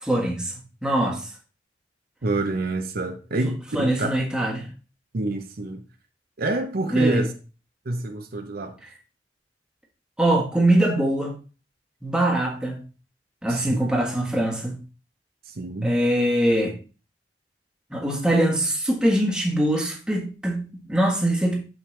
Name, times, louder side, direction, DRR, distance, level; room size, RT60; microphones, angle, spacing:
voice 1, 0.0-0.5 0.8-1.3 3.7-4.7 6.9-7.2 10.2-11.3 12.0-12.8 13.4-14.8 15.8-16.7 17.9-21.6, right 1 dB, 5° right, 1.4 m, -22 dB
voice 2, 2.2-4.1 5.1-5.8 6.4-7.3 7.9-8.8 13.5-13.8 15.4-16.0, right 2 dB, 55° right, 0.7 m, -27 dB
6.5 x 6.1 x 3.2 m
head